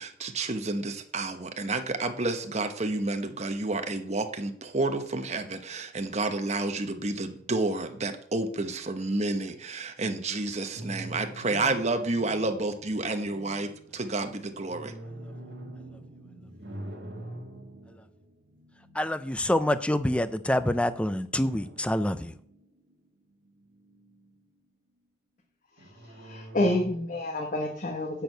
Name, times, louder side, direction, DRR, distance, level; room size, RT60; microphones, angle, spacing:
voice 1, 0.0-14.9, right 2 dB, 35° right, 7 dB, 1.0 m, -30 dB
sound 1, 10.7-20.1 21.3-22.9 23.3-24.4 25.8-27.4, right 1 dB, 65° right, 1.7 m, -45 dB
voice 2, 18.9-22.4, left 1 dB, 5° left, 12 dB, 0.5 m, -27 dB
voice 3, 26.2-28.2, left 1 dB, 45° left, 0 dB, 1.2 m, -28 dB
10.0 x 4.6 x 7.8 m, 0.62 s
head